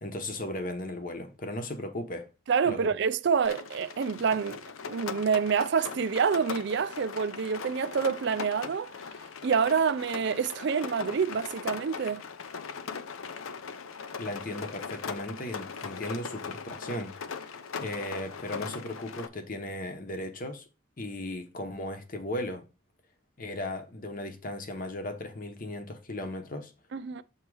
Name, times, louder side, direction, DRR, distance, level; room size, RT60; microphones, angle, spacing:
voice 1, 0.0-2.3 2.7-2.8 14.2-20.6 21.0-22.6 23.4-26.7, left 1 dB, 40° left, 0.9 m, -36 dB
voice 2, 2.5-8.9 9.4-12.2 26.9-27.2, right 6 dB, 55° right, 0.4 m, -27 dB
Rain, 3.4-19.3, left 6 dB, 75° left, 0.6 m, -40 dB
7.3 x 3.0 x 4.7 m
head